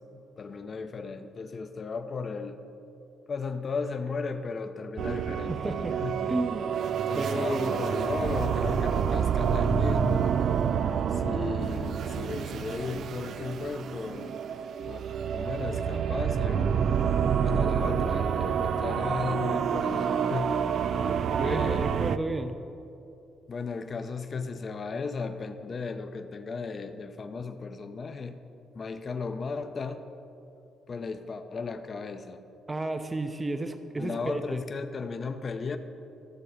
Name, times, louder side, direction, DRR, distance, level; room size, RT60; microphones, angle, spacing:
voice 1, 0.1-2.6 3.3-6.2 7.1-10.3 11.1-14.3 14.9-16.8 17.4-20.7 21.4-22.1 23.5-28.4 28.7-30.0 30.9-32.4 34.0-35.8, left 4 dB, 40° left, 8 dB, 0.7 m, -35 dB
sound 1, 5.0-22.2, right 7 dB, 65° right, 0.4 m, -28 dB
voice 2, 5.5-6.0 6.3-6.7 7.1-7.7 21.3-22.6 32.7-34.6, right 2 dB, 20° right, 7 dB, 0.6 m, -32 dB
13.5 x 6.8 x 5.0 m, 2.7 s
cardioid pair, 90°, 0 cm